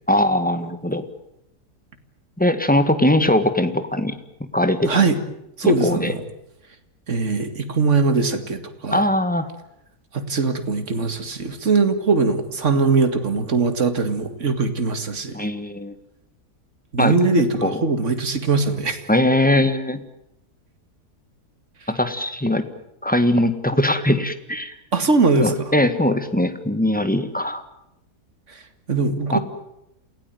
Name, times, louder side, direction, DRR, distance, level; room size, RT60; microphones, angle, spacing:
voice 1, 0.1-1.0 2.4-4.1 4.4-5.0 5.6-6.1 8.9-9.5 15.3-15.9 17.0-17.1 17.6-17.8 19.1-20.0 21.9-22.6 23.0-24.7 25.4-27.6 29.3-29.4, left 1 dB, 5° left, 10 dB, 1.6 m, -20 dB
voice 2, 4.9-5.2 5.6-6.2 7.1-9.0 10.1-15.4 16.9-19.0 24.9-25.7 28.9-29.4, right 4 dB, 45° right, 8 dB, 2.4 m, -21 dB
28.5 x 17.5 x 9.3 m, 0.82 s
omnidirectional pair, 1.7 m